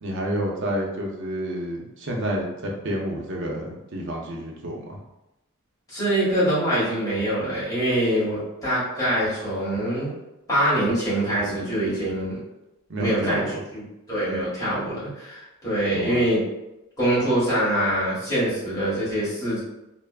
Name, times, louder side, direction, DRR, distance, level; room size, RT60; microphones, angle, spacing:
voice 1, 0.0-5.0 12.9-13.6 15.9-16.2, right 1 dB, 60° right, -1 dB, 0.6 m, -29 dB
voice 2, 5.9-10.1 10.5-12.4 13.0-13.8 14.1-16.4 17.0-19.6, right 1 dB, 15° left, -11 dB, 1.5 m, -24 dB
3.2 x 2.0 x 2.3 m, 0.93 s
head